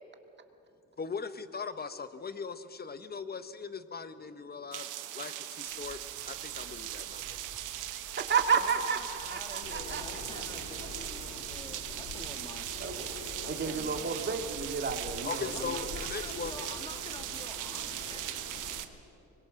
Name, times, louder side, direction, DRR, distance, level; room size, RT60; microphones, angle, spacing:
voice 1, 1.0-4.9 5.1-6.0 6.2-7.4 15.2-16.8, left 5 dB, 30° left, 12 dB, 1.2 m, -39 dB
sound 1, 4.7-18.9, right 13 dB, 90° right, 1.2 m, -39 dB
sound 2, 5.7-14.5, right 4 dB, 70° right, 4.5 m, -54 dB
voice 2, 7.9-10.4 10.8-10.9 12.8-13.1 13.5-15.8, right 6 dB, 35° right, 5 dB, 2.2 m, -32 dB
voice 3, 8.6-12.9 13.4-14.1 15.5-18.3, left 2 dB, 15° left, 6 dB, 2.1 m, -48 dB
Wind, 9.6-18.8, left 5 dB, 70° left, 2.3 m, -45 dB
24.0 x 22.0 x 6.5 m, 2.9 s
cardioid pair, 90°, 30 cm